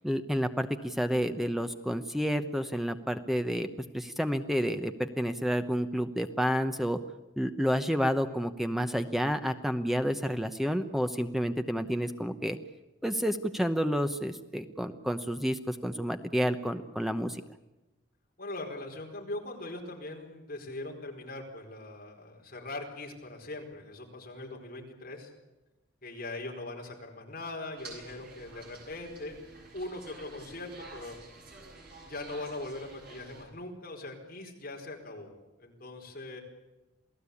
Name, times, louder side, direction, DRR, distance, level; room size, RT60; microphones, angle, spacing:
voice 1, 0.0-3.7 3.9-7.0 7.4-12.6 13.0-17.4, equal, ahead, 8 dB, 0.9 m, -30 dB
voice 2, 18.4-25.3 26.0-29.4 29.7-31.2 32.0-35.3 35.6-36.4, left 2 dB, 45° left, 1 dB, 4.7 m, -41 dB
sound 1, 27.8-33.5, right 2 dB, 45° right, 7.2 m, -49 dB
28.0 x 17.5 x 8.5 m, 1.0 s
head